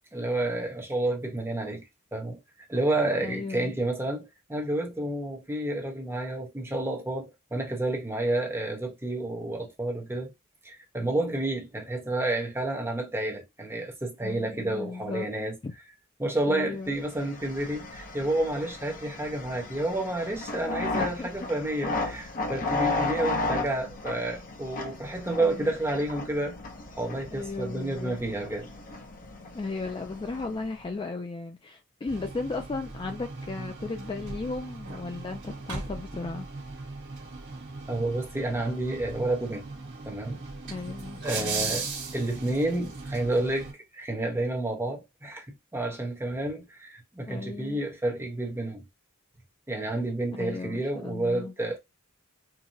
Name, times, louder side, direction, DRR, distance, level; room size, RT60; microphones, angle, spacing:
voice 1, 0.1-1.8 2.1-2.4 2.7-10.3 10.6-15.6 16.2-26.6 27.0-28.7 37.9-39.7 40.0-40.4 41.2-41.9 42.1-45.5 45.7-48.8 49.7-51.8, right 1 dB, 10° right, 1.0 m, -30 dB
voice 2, 3.2-3.8 14.2-15.3 15.6-15.7 16.5-16.9 20.9-21.5 25.4-25.7 27.3-28.2 29.5-36.5 40.6-41.7 47.3-47.8 50.3-51.5, left 3 dB, 25° left, 0.3 m, -36 dB
sound 1, 17.0-30.9, left 2 dB, 40° left, 0.8 m, -35 dB
sound 2, 32.1-43.7, right 4 dB, 60° right, 1.6 m, -38 dB
4.6 x 2.1 x 2.7 m
head